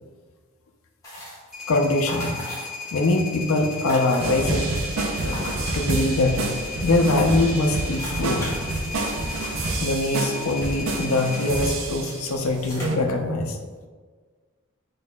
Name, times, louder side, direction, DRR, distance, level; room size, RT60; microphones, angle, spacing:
sound 1, 1.0-1.6 2.1-3.0 3.3-3.4 3.6-4.7 5.2-6.3 6.7-6.8 7.0-11.3 11.7-12.0 12.4-12.9, equal, 15° left, 1.4 m, -39 dB
sound 2, 1.5-11.6, left 4 dB, ahead, 1.5 m, -36 dB
voice 1, 1.7-2.5 2.9-4.7 5.2-6.5 6.8-8.5 9.8-13.6, left 2 dB, 75° left, 4 dB, 0.5 m, -23 dB
sound 3, 4.2-12.4 12.8-13.0, right 2 dB, 70° right, 0.5 m, -28 dB
4.6 x 4.6 x 2.2 m, 1.5 s
head